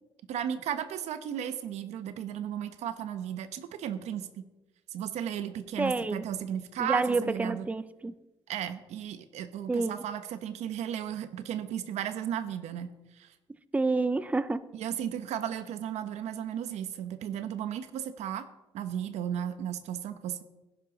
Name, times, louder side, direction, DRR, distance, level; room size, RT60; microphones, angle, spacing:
voice 1, 0.3-4.4 4.9-7.7 8.5-13.3 14.7-18.5 18.7-20.4, right 9 dB, 90° right, 11 dB, 0.9 m, -35 dB
voice 2, 5.8-6.3 6.8-8.1 9.7-10.0 13.7-14.6, right 3 dB, 15° right, 15 dB, 0.5 m, -28 dB
16.5 x 10.5 x 3.9 m, 1.0 s
cardioid pair, 120°, 11 cm